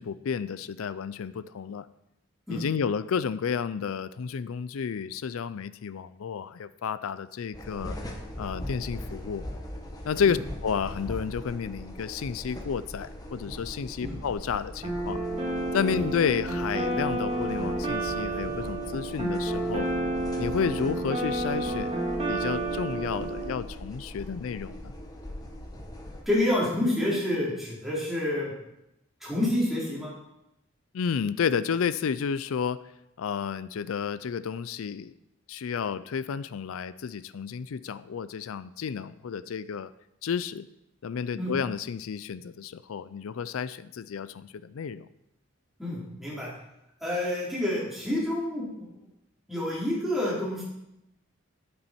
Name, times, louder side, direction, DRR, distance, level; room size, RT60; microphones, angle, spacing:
voice 1, 0.0-1.9 2.5-8.0 8.4-9.4 10.0-15.2 15.7-19.9 20.4-22.0 22.3-24.9 30.9-32.8 33.2-35.1 35.5-39.9 40.2-40.7 41.0-45.1, left 6 dB, 85° left, 15 dB, 0.4 m, -31 dB
sound 1, 7.5-26.2, left 1 dB, 20° left, 1.3 m, -40 dB
sound 2, 14.8-23.5, right 2 dB, 30° right, 2.2 m, -30 dB
voice 2, 26.3-28.5 29.2-30.1 41.4-41.5 45.8-46.5 47.0-48.9 49.5-50.6, left 1 dB, ahead, -7 dB, 3.6 m, -28 dB
9.7 x 8.7 x 4.4 m, 0.85 s
head